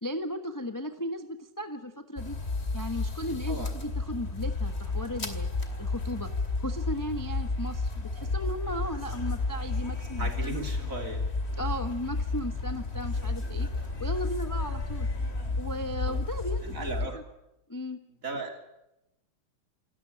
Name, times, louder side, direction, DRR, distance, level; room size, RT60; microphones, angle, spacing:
voice 1, 0.0-2.4 2.7-6.3 6.6-10.6 11.6-15.1 15.6-16.9 17.7-18.0, equal, 10° left, 7 dB, 0.9 m, -36 dB
sound 1, 2.2-17.1, left 3 dB, 30° left, 2.7 m, -32 dB
voice 2, 10.2-11.3 16.1-16.2 16.6-17.2 18.1-18.6, right 2 dB, 40° right, 4 dB, 3.6 m, -36 dB
27.5 x 14.0 x 10.0 m, 0.91 s
omnidirectional pair, 2.3 m